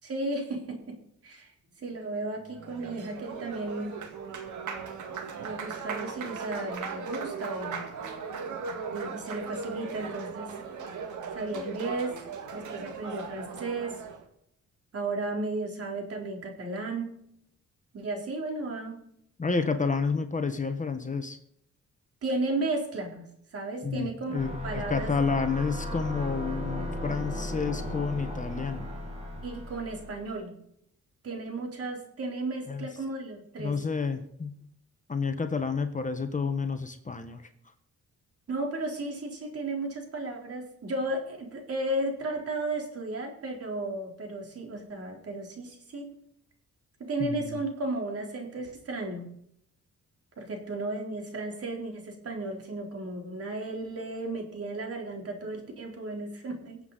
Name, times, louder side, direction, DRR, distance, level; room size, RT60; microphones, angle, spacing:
voice 1, 0.0-1.0 1.2-3.9 5.4-7.8 8.9-10.6 11.3-12.2 12.5-14.0 14.9-17.1 17.9-19.0 22.2-23.2 23.5-25.1 29.4-30.5 31.2-33.8 38.5-46.1 47.0-49.3 50.4-56.9, right 2 dB, 55° right, 1 dB, 3.8 m, -34 dB
Applause, 2.4-14.2, right 5 dB, 85° right, 2.2 m, -38 dB
voice 2, 19.4-21.4 23.8-28.9 32.7-32.9 33.6-34.5 35.1-37.5 47.2-47.6, left 5 dB, 25° left, 8 dB, 1.3 m, -30 dB
sound 1, 24.4-30.3, left 1 dB, 20° right, 4.1 m, -36 dB
23.0 x 7.9 x 4.1 m, 0.73 s
cardioid pair, 105°, 29 cm